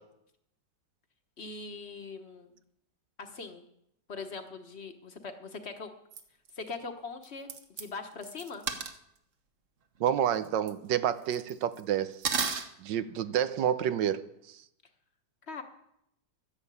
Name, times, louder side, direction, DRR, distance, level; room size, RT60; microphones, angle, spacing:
voice 1, 1.4-2.5 3.2-3.6 4.1-5.9 6.5-7.5 7.8-8.7 15.5-15.6, left 4 dB, 40° left, 1.5 m, -41 dB
sound 1, 6.1-6.2 6.5-6.6 7.2-7.3 7.5-7.8 8.2-9.0 10.1-10.2 10.4-10.7 11.3-11.8 12.2-12.6, right 5 dB, 50° right, 1.4 m, -32 dB
voice 2, 10.0-12.2 12.8-14.6, right 10 dB, 85° right, 1.5 m, -29 dB
12.5 x 11.0 x 8.4 m
omnidirectional pair, 1.9 m